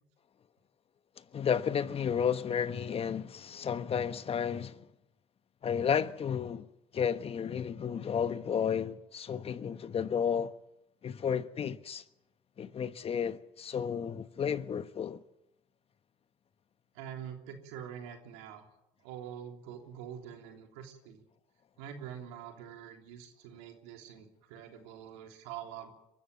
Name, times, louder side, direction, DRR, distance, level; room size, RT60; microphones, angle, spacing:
voice 1, 1.3-4.8 5.6-6.7 6.9-10.5 11.0-12.0 12.6-15.2, left 7 dB, 40° left, 1.3 m, -32 dB
voice 2, 16.9-18.7 19.0-21.2 21.8-25.9, right 9 dB, 85° right, 3.3 m, -45 dB
23.5 x 13.5 x 9.5 m
supercardioid pair, 75°, 15 cm